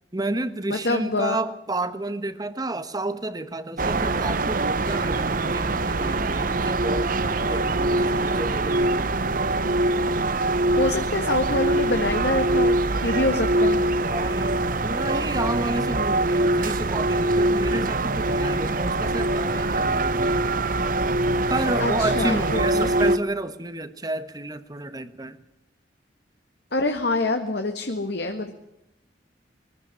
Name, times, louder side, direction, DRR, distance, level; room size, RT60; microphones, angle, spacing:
voice 1, 0.1-9.1 14.1-20.4 21.5-25.4, right 2 dB, 20° right, 1.3 m, -31 dB
voice 2, 0.8-1.4 10.8-13.8 21.8-22.9 26.7-28.5, left 2 dB, 60° left, 1.7 m, -25 dB
sound 1, 3.8-23.2, right 2 dB, 50° right, 0.9 m, -23 dB
22.5 x 15.0 x 9.8 m
head